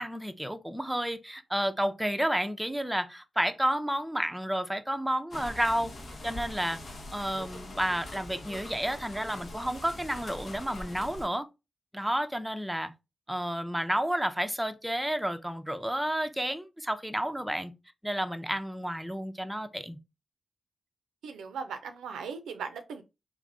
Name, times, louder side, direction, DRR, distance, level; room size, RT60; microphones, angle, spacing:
voice 1, 0.0-5.9 6.2-6.8 7.1-11.5 11.9-12.9 13.3-17.7 18.0-20.0, equal, 5° right, 0.5 m, -31 dB
sound 1, 5.3-11.3, left 1 dB, 65° left, 0.8 m, -43 dB
voice 2, 21.2-23.0, right 6 dB, 90° right, 0.4 m, -38 dB
3.3 x 2.0 x 3.7 m
supercardioid pair, 45°, 0 cm